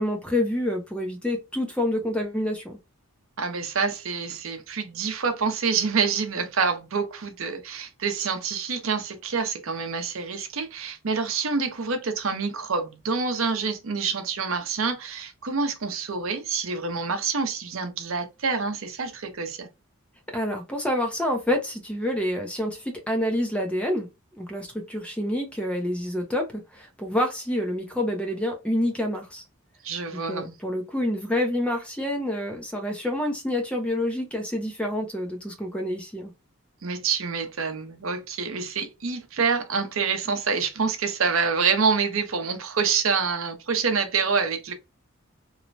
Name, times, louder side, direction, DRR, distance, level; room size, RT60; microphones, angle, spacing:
voice 1, 0.0-2.8 20.3-24.1 24.3-29.4 30.1-36.3, left 1 dB, 5° left, 0.4 m, -28 dB
voice 2, 3.4-19.7 29.8-30.5 36.8-44.7, right 5 dB, 65° right, 0.6 m, -27 dB
3.0 x 2.1 x 2.5 m
head